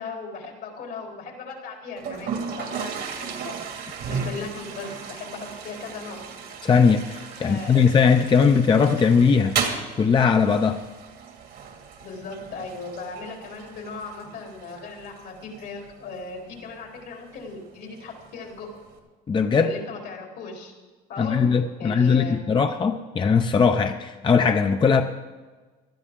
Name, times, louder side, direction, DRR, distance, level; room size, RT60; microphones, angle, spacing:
voice 1, 0.0-3.6 4.1-6.3 7.3-7.8 12.0-18.7 19.5-20.7 21.1-21.5 21.8-22.4, left 4 dB, 75° left, 0 dB, 3.8 m, -37 dB
Toilet flush, 2.0-19.0, right 6 dB, 75° right, 2.3 m, -36 dB
voice 2, 6.6-9.6 10.0-10.8 19.3-19.7 21.2-25.0, left 5 dB, 30° left, 6 dB, 0.7 m, -19 dB
18.0 x 12.5 x 3.7 m, 1.3 s
cardioid pair, 110°, 17 cm